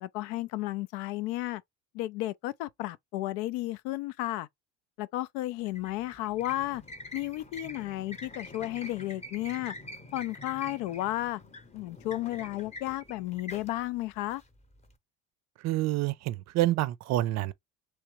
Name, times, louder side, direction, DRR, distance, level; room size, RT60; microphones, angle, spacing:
voice 1, 0.0-1.6 1.9-4.5 5.0-6.8 7.1-9.7 10.1-11.4 11.7-14.4, left 16 dB, 80° left, 0.6 m, -33 dB
sound 1, 5.6-14.9, left 1 dB, 20° left, 0.8 m, -46 dB
voice 2, 15.6-17.5, right 15 dB, 50° right, 0.5 m, -27 dB
3.4 x 3.2 x 3.0 m
supercardioid pair, 105°, 35 cm